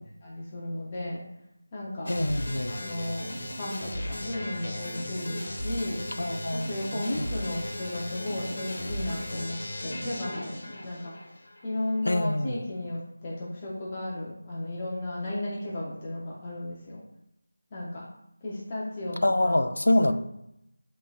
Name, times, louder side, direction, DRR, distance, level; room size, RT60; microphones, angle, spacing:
voice 1, 0.2-1.2 1.7-2.1 2.7-6.1 6.5-11.1 11.6-17.0 17.7-18.1 18.4-19.7 20.0-20.1, left 1 dB, 20° left, -6 dB, 0.6 m, -34 dB
voice 2, 2.1-2.8 6.2-6.7 6.9-7.3 12.0-12.6 19.2-20.1, left 1 dB, 90° left, 8 dB, 0.4 m, -25 dB
sound 1, 2.1-11.7, left 1 dB, 65° left, 1.1 m, -36 dB
3.7 x 3.0 x 2.3 m, 0.81 s
figure-of-eight pair, 175°, 0 cm